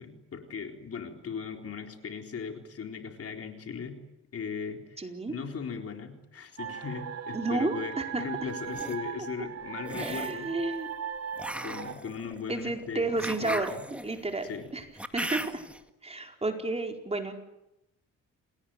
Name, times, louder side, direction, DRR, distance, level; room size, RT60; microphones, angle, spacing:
voice 1, 0.0-4.0 4.3-10.5 11.6-13.8 14.4-14.7, left 6 dB, 50° left, 4 dB, 4.1 m, -38 dB
voice 2, 5.0-5.3 7.3-8.2 10.0-10.9 12.5-14.8 15.1-15.6 16.0-17.3, right 2 dB, 20° right, 3 dB, 4.6 m, -32 dB
sound 1, 6.6-11.9, right 8 dB, 60° right, 4.2 m, -38 dB
sound 2, 8.5-9.0 9.8-10.4 11.4-15.8, right 1 dB, 5° right, 2.0 m, -38 dB
28.0 x 19.5 x 9.1 m, 0.92 s
cardioid pair, 90°, 30 cm